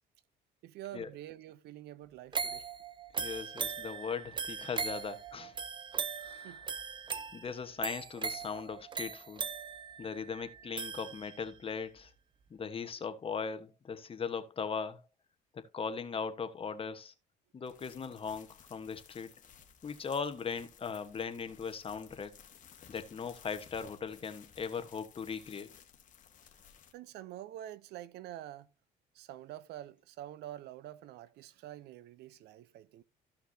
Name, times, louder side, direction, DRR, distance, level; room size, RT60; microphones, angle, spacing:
voice 1, 0.6-2.7 6.4-6.7 26.9-28.7 29.1-33.0, right 13 dB, 80° right, 0.7 m, -47 dB
sound 1, 2.3-11.6 12.0-12.1, right 6 dB, 30° right, 0.8 m, -39 dB
voice 2, 3.2-5.5 6.2-6.6 7.1-9.4 10.0-12.1 12.5-15.0 15.7-17.1 17.5-19.3 19.8-22.3 22.9-25.7, left 6 dB, 35° left, 1.2 m, -39 dB
sound 2, 17.7-26.9, left 8 dB, 50° left, 1.7 m, -58 dB
14.5 x 5.8 x 2.8 m
cardioid pair, 110°, 17 cm